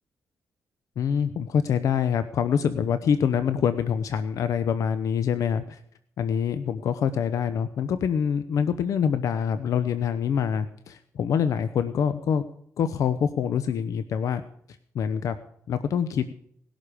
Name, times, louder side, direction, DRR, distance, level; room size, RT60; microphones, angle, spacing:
voice 1, 1.0-5.8 6.2-12.4 12.8-14.4 14.9-15.4 15.7-16.3, left 7 dB, 70° left, 12 dB, 0.8 m, -25 dB
19.0 x 11.5 x 5.1 m, 0.70 s
cardioid pair, 100°, 6 cm